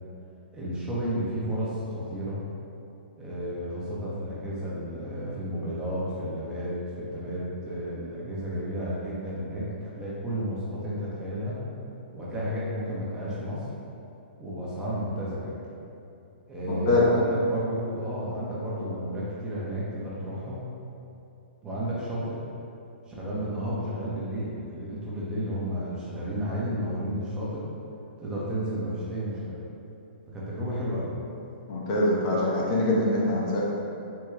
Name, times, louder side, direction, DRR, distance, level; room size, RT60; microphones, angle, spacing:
voice 1, 0.5-2.4 3.2-11.6 12.1-13.7 14.4-15.6 16.5-20.6 21.6-22.4 23.1-27.6 28.2-29.6 30.3-31.1, equal, 15° right, -8 dB, 0.7 m, -32 dB
voice 2, 16.7-17.0 31.7-33.6, left 2 dB, 40° left, -4 dB, 0.6 m, -24 dB
3.5 x 2.2 x 3.1 m, 2.7 s
figure-of-eight pair, 125°, 6 cm